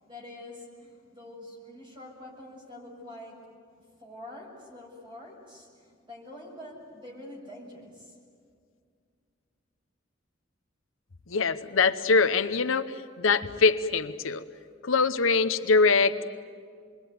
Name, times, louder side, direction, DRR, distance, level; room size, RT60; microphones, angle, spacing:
voice 1, 0.0-3.4 4.0-8.2, left 1 dB, 25° right, -1 dB, 7.1 m, -45 dB
voice 2, 11.3-14.4 14.8-16.3, left 4 dB, 80° left, 10 dB, 0.9 m, -23 dB
27.0 x 22.0 x 9.5 m, 2.2 s
head